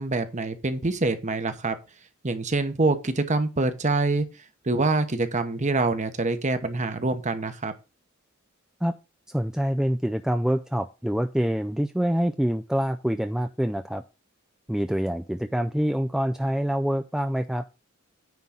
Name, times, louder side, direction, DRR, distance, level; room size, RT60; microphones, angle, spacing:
voice 1, 0.0-1.8 2.2-4.3 4.6-7.7, right 3 dB, 35° right, 1.0 m, -25 dB
voice 2, 9.3-14.0 14.7-17.6, equal, 5° right, 0.3 m, -26 dB
9.4 x 3.8 x 5.8 m
head